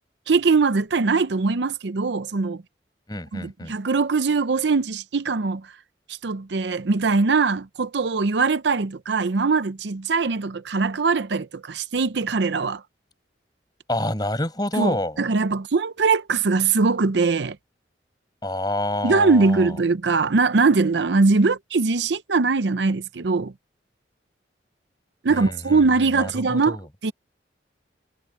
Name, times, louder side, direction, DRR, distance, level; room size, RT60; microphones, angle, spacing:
voice 1, 0.3-2.6 3.3-5.7 6.2-12.8 14.8-17.6 19.0-23.5 25.2-27.1, right 4 dB, 70° right, 0.6 m, -21 dB
voice 2, 3.1-3.7 13.9-15.2 18.4-19.7 25.3-25.9 26.1-26.8, left 1 dB, 20° left, 5.6 m, -28 dB
head